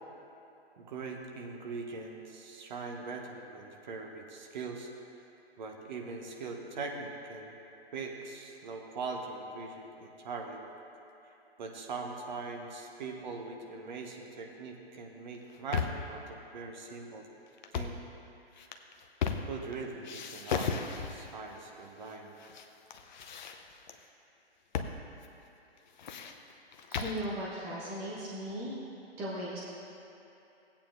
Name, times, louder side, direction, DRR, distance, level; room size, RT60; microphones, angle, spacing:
voice 1, 0.8-4.9 5.6-7.5 7.9-10.6 11.6-17.3 17.7-18.0 19.5-22.4, right 4 dB, 45° right, 2 dB, 1.2 m, -41 dB
sound 1, 15.3-16.1 17.6-18.0 18.6-19.7 20.0-21.3 22.1-22.6 22.9-23.9 24.7-25.0 25.2-25.3 25.8-27.2, left 6 dB, 45° left, 0.7 m, -36 dB
voice 2, 26.9-28.7 29.2-29.6, equal, 5° right, -6 dB, 0.4 m, -37 dB
17.0 x 8.7 x 2.6 m, 2.9 s
figure-of-eight pair, 125°, 32 cm